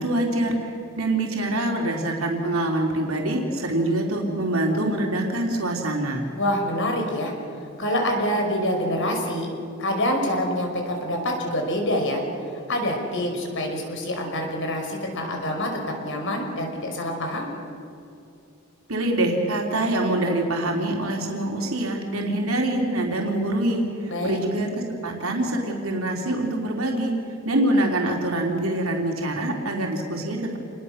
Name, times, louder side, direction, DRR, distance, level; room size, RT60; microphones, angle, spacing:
voice 1, 0.0-6.2 18.9-27.1 27.4-30.6, right 1 dB, 75° right, 0 dB, 3.7 m, -25 dB
voice 2, 6.4-7.3 7.8-9.5 9.8-12.2 12.7-17.5 24.1-24.4, left 1 dB, 60° left, 2 dB, 5.3 m, -26 dB
28.5 x 21.0 x 6.7 m, 2.6 s
head